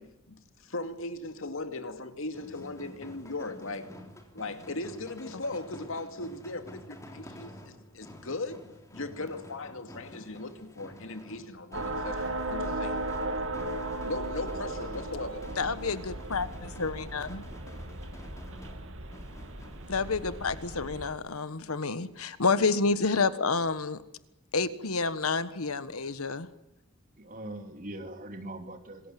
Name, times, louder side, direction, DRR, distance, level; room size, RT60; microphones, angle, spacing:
voice 1, 0.0-4.0 4.3-13.0 14.1-15.5, left 2 dB, 65° left, 2.5 m, -38 dB
sound 1, 2.3-20.9, left 1 dB, 15° left, 3.6 m, -50 dB
sound 2, 11.7-21.1, right 1 dB, 60° right, 2.6 m, -36 dB
voice 2, 15.6-17.4 19.9-24.0 24.5-26.5, left 4 dB, 80° left, 1.4 m, -29 dB
voice 3, 27.2-29.1, right 1 dB, 40° right, 2.9 m, -41 dB
26.5 x 21.0 x 9.4 m
head